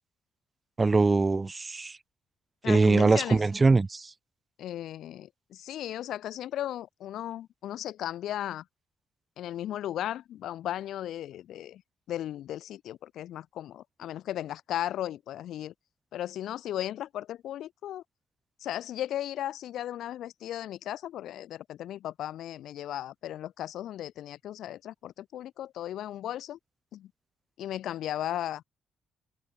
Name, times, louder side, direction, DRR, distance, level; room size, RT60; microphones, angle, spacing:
voice 1, 0.8-2.0 2.6-4.1, right 3 dB, 25° right, 1.3 m, -22 dB
voice 2, 2.6-3.4 4.6-8.6 9.4-11.8 12.1-15.7 16.1-18.0 18.6-26.6 26.9-27.1 27.6-28.6, left 12 dB, 75° left, 1.4 m, -36 dB
cardioid pair, 90°, 0 cm